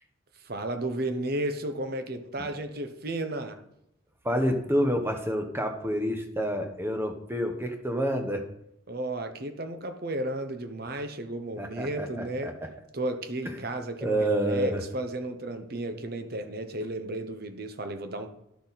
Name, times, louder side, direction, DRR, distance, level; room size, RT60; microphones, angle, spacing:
voice 1, 0.4-3.6 8.9-12.5 12.9-18.3, right 1 dB, 50° right, 7 dB, 0.9 m, -33 dB
voice 2, 4.2-8.4 11.6-12.7 13.4-13.5 14.0-14.9, equal, 10° right, 4 dB, 1.0 m, -28 dB
11.5 x 6.4 x 4.1 m, 0.78 s
head